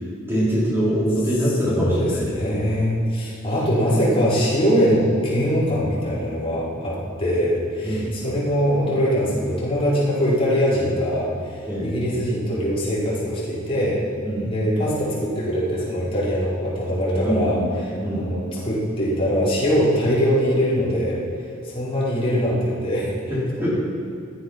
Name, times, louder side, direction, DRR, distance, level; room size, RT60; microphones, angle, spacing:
voice 1, 0.3-2.5 7.8-8.2 11.7-11.9 14.2-14.5 17.2-17.7 18.0-18.3 23.3-23.8, equal, 10° right, -9 dB, 4.4 m, -23 dB
voice 2, 1.6-14.0 14.4-17.6 18.1-21.2 21.6-23.1, equal, 30° left, -9 dB, 5.2 m, -22 dB
16.5 x 13.0 x 5.9 m, 2.5 s
head